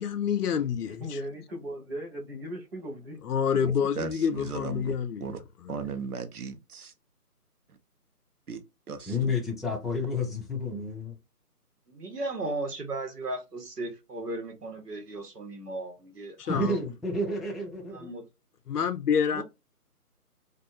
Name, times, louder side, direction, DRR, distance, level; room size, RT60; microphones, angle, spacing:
voice 1, 0.0-1.2 3.2-5.3 5.6-5.8 16.4-16.8 18.7-19.4, left 7 dB, 75° left, 0.6 m, -28 dB
voice 2, 1.0-3.2 3.8-4.1, equal, 40° right, 0.8 m, -38 dB
voice 3, 3.6-5.0 5.2-5.4 5.7-6.9 8.5-8.6 8.9-9.3, right 5 dB, 70° right, 0.9 m, -37 dB
voice 4, 9.1-11.2 16.5-18.1, left 2 dB, ahead, 0.4 m, -30 dB
voice 5, 11.9-16.6 17.8-18.2 19.2-19.4, right 2 dB, 90° right, 1.2 m, -36 dB
2.5 x 2.3 x 2.5 m
figure-of-eight pair, 165°, 47 cm